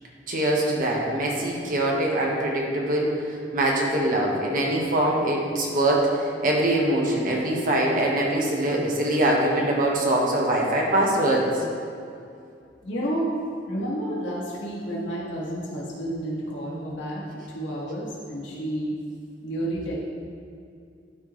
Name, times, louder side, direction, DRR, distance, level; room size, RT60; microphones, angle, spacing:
voice 1, 0.3-3.2 3.5-11.5, right 1 dB, 50° right, -2 dB, 1.1 m, -23 dB
voice 2, 12.8-13.3 13.7-17.2 17.5-19.0 19.4-20.0, right 1 dB, 75° left, -6 dB, 1.8 m, -30 dB
11.5 x 4.3 x 3.2 m, 2.4 s
head